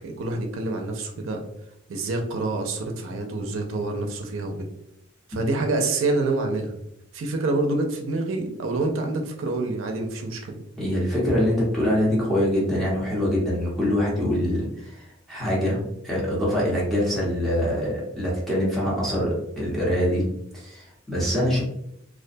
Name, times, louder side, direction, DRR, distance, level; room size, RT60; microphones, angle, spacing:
voice 1, 0.0-1.4 1.9-4.7 5.3-6.8 7.1-10.6, right 2 dB, 80° right, 3 dB, 0.4 m, -27 dB
voice 2, 10.8-15.0 15.3-20.3 20.5-21.6, equal, ahead, -7 dB, 0.9 m, -24 dB
2.4 x 2.2 x 2.5 m, 0.77 s
head